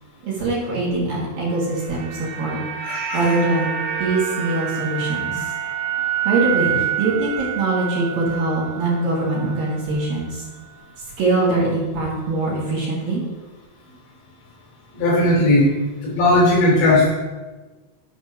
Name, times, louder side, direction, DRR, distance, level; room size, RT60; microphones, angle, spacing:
voice 1, 0.2-2.6 2.9-3.7 4.0-5.5 6.2-10.4 11.2-13.2, right 2 dB, 60° right, -6 dB, 3.2 m, -23 dB
sound 1, 1.5-9.8 10.1-10.2, right 9 dB, 75° right, 3.0 m, -27 dB
voice 2, 2.8-3.3 14.9-15.7 16.0-17.1, left 1 dB, 70° left, -3 dB, 4.9 m, -17 dB
10.0 x 4.2 x 6.0 m, 1.2 s
omnidirectional pair, 5.3 m